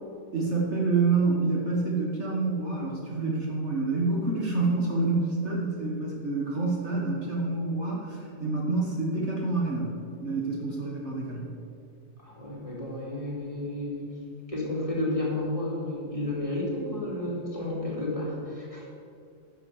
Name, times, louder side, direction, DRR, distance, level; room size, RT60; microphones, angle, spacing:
voice 1, 0.3-9.9 10.2-11.5, right 3 dB, 45° right, -3 dB, 1.6 m, -27 dB
voice 2, 12.2-14.0 14.5-18.9, left 1 dB, 20° left, -5 dB, 2.7 m, -31 dB
10.0 x 6.4 x 7.1 m, 2.5 s
omnidirectional pair, 1.7 m